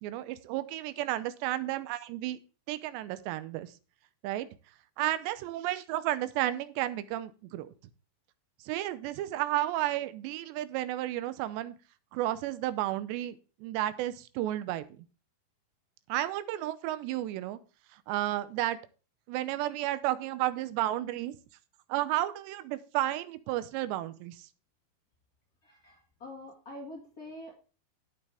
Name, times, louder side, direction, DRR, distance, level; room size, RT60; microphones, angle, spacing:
voice 1, 0.0-2.4 2.7-3.7 4.2-4.5 5.0-7.7 8.6-11.8 12.1-15.1 16.1-17.6 17.9-18.8 19.3-21.4 21.9-24.5, right 14 dB, 80° right, 13 dB, 2.9 m, -32 dB
voice 2, 25.6-27.5, left 1 dB, 50° left, -1 dB, 1.0 m, -45 dB
11.5 x 8.5 x 3.4 m, 0.35 s
omnidirectional pair, 5.0 m